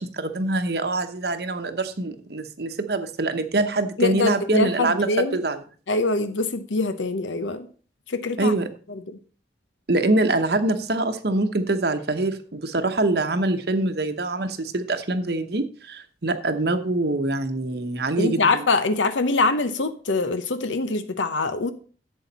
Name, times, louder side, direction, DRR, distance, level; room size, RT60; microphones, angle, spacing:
voice 1, 0.0-5.6 8.4-8.7 9.9-18.5, right 2 dB, 60° right, 0.9 m, -24 dB
voice 2, 4.0-5.4 5.9-7.7 8.1-8.5 8.9-9.0 18.2-21.7, left 3 dB, 90° left, 0.8 m, -24 dB
11.0 x 7.8 x 4.1 m
head